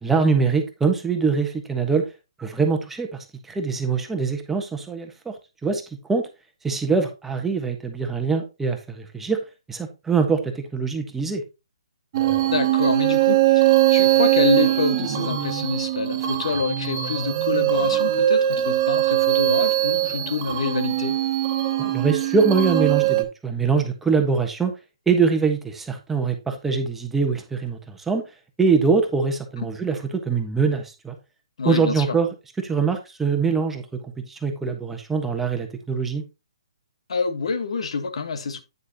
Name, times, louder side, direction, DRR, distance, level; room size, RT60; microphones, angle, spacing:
voice 1, 0.0-2.1 2.4-3.2 3.5-5.4 5.6-5.8 6.1-6.3 6.6-9.4 9.7-11.4 21.8-24.7 25.1-28.2 28.6-30.0 30.2-31.1 31.6-32.3 32.6-36.2, right 5 dB, 5° right, 1.3 m, -23 dB
sound 1, 12.1-23.2, right 13 dB, 40° right, 1.7 m, -21 dB
voice 2, 12.5-21.2 29.6-29.7 31.6-32.2 37.1-38.6, left 5 dB, 70° left, 1.6 m, -27 dB
9.5 x 6.4 x 2.9 m
hypercardioid pair, 145°, 3 cm